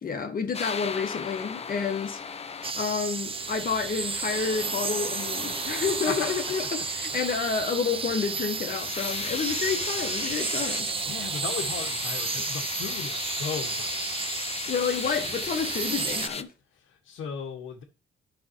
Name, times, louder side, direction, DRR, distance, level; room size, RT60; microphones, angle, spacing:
voice 1, 0.0-2.2 2.7-10.9 14.7-16.5, left 5 dB, 45° left, 1.4 m, -29 dB
sound 1, 0.5-16.4, left 5 dB, 30° left, 0.7 m, -37 dB
sound 2, 2.6-16.3, right 5 dB, 30° right, 0.6 m, -32 dB
voice 2, 6.0-6.4 7.0-7.3 11.1-14.2 16.7-17.8, left 6 dB, 85° left, 1.5 m, -36 dB
10.5 x 5.7 x 3.0 m
cardioid pair, 90°, 20 cm